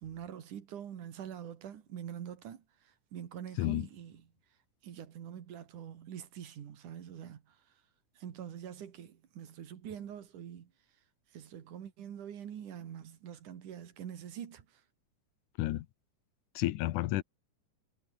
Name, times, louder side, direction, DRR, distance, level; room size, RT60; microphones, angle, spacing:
voice 1, 0.0-2.6 3.1-4.2 4.8-7.4 8.2-10.7 11.3-14.7, right 9 dB, 85° right, 3.6 m, -45 dB
voice 2, 3.6-3.9 15.6-15.9 16.6-17.2, left 15 dB, 85° left, 2.4 m, -31 dB
omnidirectional pair, 3.5 m